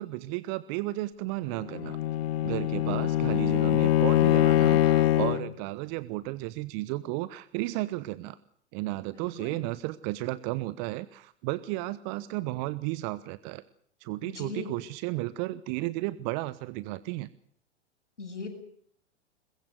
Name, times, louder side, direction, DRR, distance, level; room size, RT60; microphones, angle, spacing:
voice 1, 0.0-2.0 2.4-8.4 8.7-13.6 14.0-17.3, right 18 dB, 40° right, 16 dB, 1.1 m, -33 dB
Bowed string instrument, 1.6-5.5, left 13 dB, 55° left, 1.3 m, -23 dB
voice 2, 9.1-9.6 14.2-14.7 18.2-18.5, left 4 dB, 85° left, -1 dB, 7.4 m, -39 dB
23.0 x 21.0 x 6.4 m, 0.62 s
hypercardioid pair, 105°, 35 cm